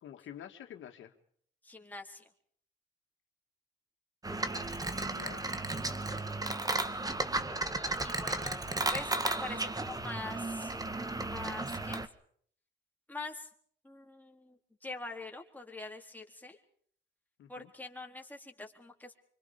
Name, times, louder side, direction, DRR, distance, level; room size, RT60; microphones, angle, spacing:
voice 1, 0.0-1.1 4.9-5.5 17.4-17.7, left 10 dB, 75° left, 5 dB, 2.7 m, -48 dB
voice 2, 1.6-2.3 7.6-10.8 11.3-12.0 13.1-13.5 13.8-16.6 17.5-19.2, left 3 dB, 10° left, 2 dB, 4.0 m, -44 dB
sound 1, 4.2-12.1, right 2 dB, 20° right, 1.8 m, -34 dB
26.5 x 24.5 x 5.3 m, 0.62 s
cardioid pair, 90°, 20 cm